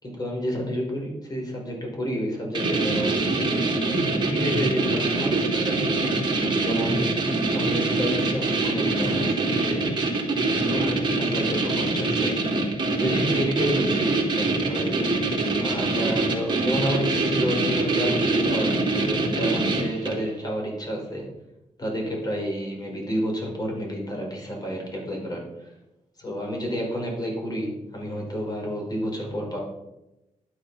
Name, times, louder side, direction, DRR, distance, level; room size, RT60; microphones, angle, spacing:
voice 1, 0.0-3.1 4.2-6.3 6.6-7.1 7.5-9.9 10.6-12.4 13.0-15.1 15.6-21.3 21.8-25.7 26.2-29.6, equal, 30° left, 0 dB, 4.9 m, -30 dB
sound 1, 2.5-20.3, right 2 dB, 35° right, 3.1 m, -24 dB
11.5 x 10.5 x 5.8 m, 0.92 s
wide cardioid pair, 120°, 13 cm